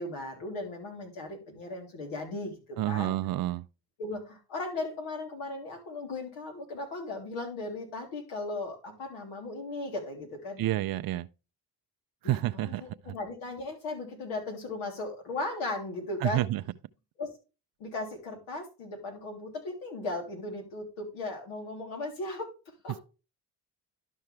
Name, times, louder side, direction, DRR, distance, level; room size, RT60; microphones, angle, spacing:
voice 1, 0.0-3.2 4.0-10.6 12.2-16.5 17.2-17.3 17.8-22.5 22.8-23.0, left 2 dB, 75° left, 3.4 m, -37 dB
voice 2, 2.8-3.7 10.6-11.3 12.2-12.8 16.2-16.6, right 15 dB, 50° right, 0.6 m, -29 dB
11.5 x 5.5 x 3.3 m
hypercardioid pair, 55°, 47 cm